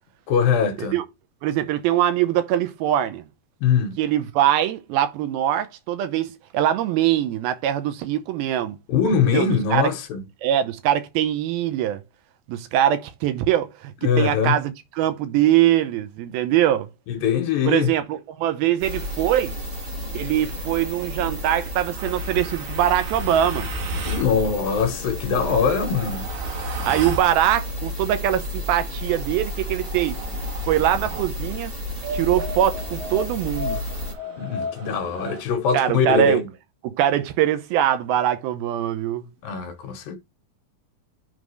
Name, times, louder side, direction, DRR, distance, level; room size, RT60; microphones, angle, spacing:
voice 1, 0.3-1.0 3.6-4.0 8.9-10.2 14.0-14.6 17.1-17.9 24.1-26.3 34.4-36.5 39.4-40.2, left 7 dB, 75° left, 2.6 m, -22 dB
voice 2, 1.4-3.3 4.0-8.8 9.3-9.9 10.4-12.0 12.5-16.9 17.7-19.6 20.1-23.7 26.9-30.2 30.7-31.7 32.1-33.8 35.7-36.4 36.8-39.3, right 11 dB, 85° right, 2.6 m, -22 dB
sound 1, 18.8-34.1, left 1 dB, 35° right, 0.8 m, -32 dB
sound 2, 21.9-24.3 25.3-27.3 29.0-31.3 32.0-35.4, equal, 60° right, 2.6 m, -33 dB
10.5 x 3.9 x 3.2 m
omnidirectional pair, 4.3 m